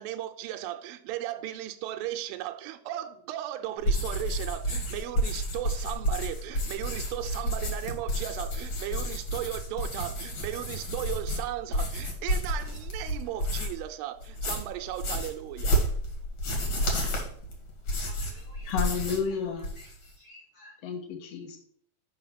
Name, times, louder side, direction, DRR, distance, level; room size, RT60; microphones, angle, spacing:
voice 1, 0.0-15.8, right 13 dB, 80° right, 2.2 m, -36 dB
sound 1, 3.8-13.9 14.2-19.3 19.5-20.1, equal, 50° left, 2.5 m, -31 dB
voice 2, 18.0-20.8, left 2 dB, 30° left, 2.0 m, -54 dB
voice 3, 18.6-19.6 20.8-21.6, left 6 dB, 75° left, 1.5 m, -31 dB
5.7 x 5.5 x 5.8 m
omnidirectional pair, 4.6 m